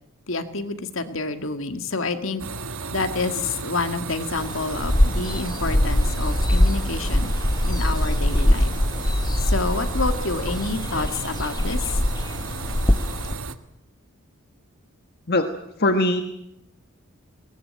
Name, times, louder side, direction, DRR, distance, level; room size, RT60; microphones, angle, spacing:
voice 1, 0.3-2.5 2.9-7.3 7.7-8.7 9.4-12.0, left 3 dB, 70° left, 8 dB, 2.0 m, -28 dB
sound 1, 2.4-13.5, right 3 dB, 80° right, 1.5 m, -33 dB
sound 2, 4.4-13.3, left 1 dB, 20° left, 1.0 m, -23 dB
voice 2, 15.8-16.2, left 2 dB, 50° left, 7 dB, 1.4 m, -20 dB
21.5 x 19.5 x 8.8 m, 0.80 s
head